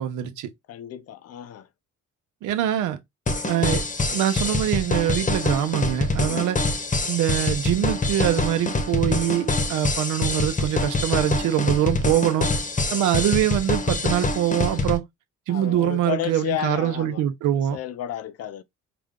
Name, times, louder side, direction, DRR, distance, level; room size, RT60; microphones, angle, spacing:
voice 1, 0.0-0.5 2.4-3.0 3.5-3.8 4.1-6.6 7.1-12.5 12.9-15.0 15.5-17.8, right 11 dB, 90° right, 0.8 m, -24 dB
voice 2, 0.7-1.7 6.3-6.5 15.5-17.2 17.7-18.6, left 11 dB, 55° left, 0.6 m, -32 dB
sound 1, 3.3-15.0, left 2 dB, 25° left, 0.9 m, -25 dB
4.9 x 2.2 x 3.6 m
cardioid pair, 90°, 30 cm